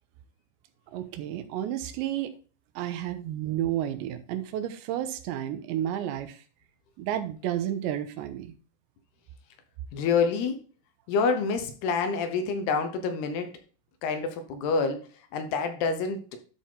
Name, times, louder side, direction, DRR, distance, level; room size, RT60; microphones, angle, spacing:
voice 1, 0.9-2.3 2.8-6.4 7.0-8.5, right 11 dB, 85° right, 3.1 m, -31 dB
voice 2, 9.9-10.6 11.1-13.5 14.0-15.1 15.3-16.2, left 5 dB, 75° left, 2.9 m, -27 dB
12.5 x 4.3 x 3.8 m
omnidirectional pair, 5.1 m